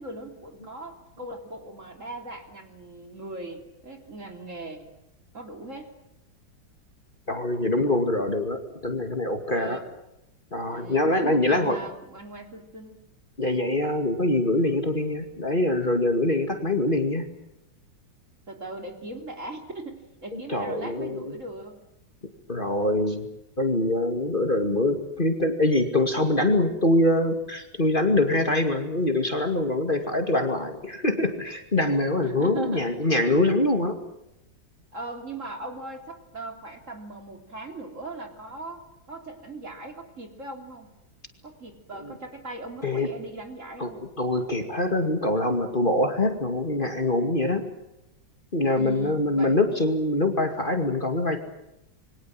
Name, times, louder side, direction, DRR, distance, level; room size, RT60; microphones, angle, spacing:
voice 1, 0.0-4.9 5.3-5.9 9.5-9.9 10.7-13.0 18.5-21.8 32.2-32.9 34.9-40.9 41.4-44.0 48.7-49.6, right 2 dB, 45° right, 4 dB, 3.7 m, -39 dB
voice 2, 7.3-9.8 10.5-11.8 13.4-17.3 20.3-21.4 22.5-23.3 23.6-34.0 42.0-42.1 42.8-43.1 43.8-47.7 48.5-51.4, left 1 dB, 30° left, 5 dB, 2.5 m, -24 dB
27.5 x 23.5 x 7.7 m, 0.87 s
omnidirectional pair, 1.9 m